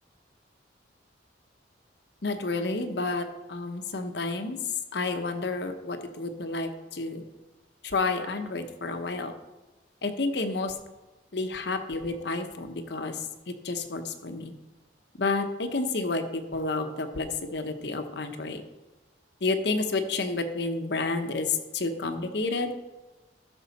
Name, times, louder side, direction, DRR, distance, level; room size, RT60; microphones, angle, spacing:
voice 1, 2.2-4.6 4.9-7.2 7.8-9.3 10.0-10.7 11.3-13.2 13.5-14.5 15.2-18.6 19.4-22.8, left 3 dB, 60° left, 7 dB, 0.9 m, -30 dB
13.5 x 6.2 x 4.1 m, 1.1 s
head